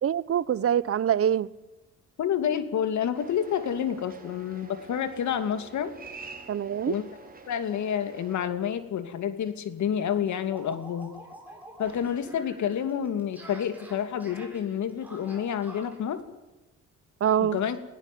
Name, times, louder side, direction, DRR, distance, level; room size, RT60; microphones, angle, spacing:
voice 1, 0.0-1.5 6.5-6.9 17.2-17.6, right 9 dB, 50° right, 1.0 m, -24 dB
voice 2, 2.2-5.9 6.8-7.0 7.5-11.1 11.8-16.2 17.4-17.8, left 9 dB, 70° left, 2.7 m, -29 dB
sound 1, 3.1-8.5, right 4 dB, 30° right, 5.2 m, -47 dB
sound 2, 9.0-9.2 9.5-9.6 9.9-16.0, right 1 dB, 5° right, 7.6 m, -48 dB
21.5 x 17.0 x 9.4 m
cardioid pair, 90°, 30 cm